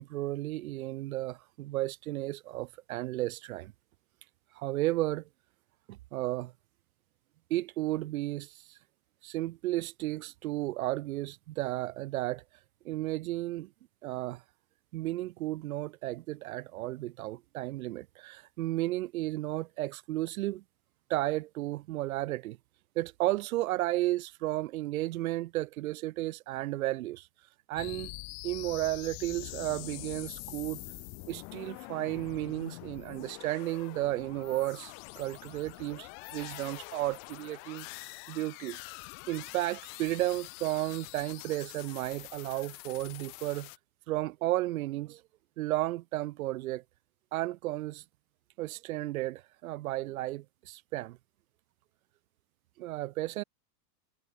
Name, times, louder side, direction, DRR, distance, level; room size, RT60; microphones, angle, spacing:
voice 1, 0.0-3.7 4.5-5.2 5.9-6.5 7.5-8.8 9.2-12.4 12.8-13.7 14.0-14.4 14.9-20.6 21.1-22.6 23.0-27.3 27.7-28.1 28.4-30.8 31.3-37.9 38.3-38.8 39.3-43.7 44.1-45.2 45.6-46.8 47.3-48.0 48.6-51.2 52.8-53.4, right 16 dB, 60° right, 0.7 m, -33 dB
sound 1, 27.8-43.8, left 40 dB or more, 35° left, 2.3 m, -45 dB
supercardioid pair, 165°, 48 cm